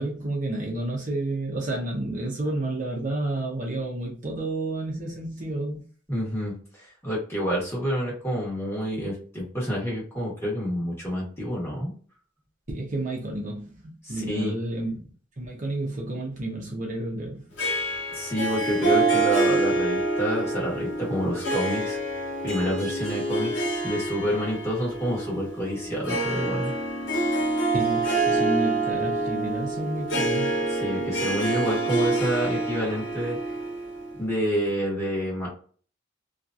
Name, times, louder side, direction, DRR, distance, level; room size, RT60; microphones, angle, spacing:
voice 1, 0.0-5.8 12.7-15.0 15.4-17.5 27.7-30.6, right 2 dB, 40° right, 0.9 m, -30 dB
voice 2, 6.1-11.9 14.0-14.5 18.1-22.0 22.4-26.7 30.7-33.4 34.2-35.5, equal, 15° left, 1.2 m, -28 dB
Harp, 17.6-34.3, right 2 dB, 65° left, 0.9 m, -27 dB
2.9 x 2.5 x 2.5 m
head